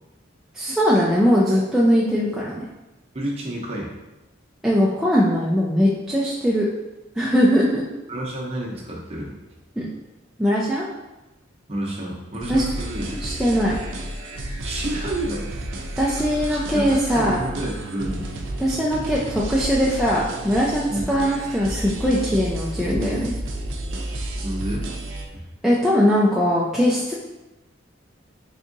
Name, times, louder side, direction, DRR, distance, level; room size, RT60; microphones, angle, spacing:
voice 1, 0.5-2.7 4.6-6.7 7.2-7.8 9.8-9.9 10.4-10.9 12.5-12.6 13.2-13.8 16.0-17.4 18.6-23.3 25.6-27.1, equal, ahead, -6 dB, 0.3 m, -20 dB
voice 2, 3.1-3.9 8.1-9.3 11.7-13.1 14.6-15.5 16.5-18.3 20.9-21.1 24.4-24.9, right 1 dB, 30° right, -2 dB, 0.7 m, -29 dB
sound 1, 12.4-25.3, right 1 dB, 70° right, 0.5 m, -31 dB
4.0 x 3.5 x 2.6 m, 1.0 s
head